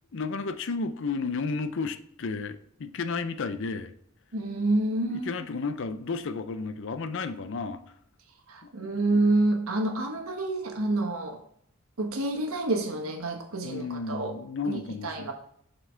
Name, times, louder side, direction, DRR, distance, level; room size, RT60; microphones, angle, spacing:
voice 1, 0.1-3.9 5.1-7.8 8.6-8.7 13.6-15.3, left 4 dB, 60° left, 0.5 m, -32 dB
voice 2, 4.3-5.3 8.5-11.4 12.0-14.3 14.6-15.3, right 2 dB, 75° right, 1.2 m, -28 dB
7.0 x 4.4 x 4.4 m
head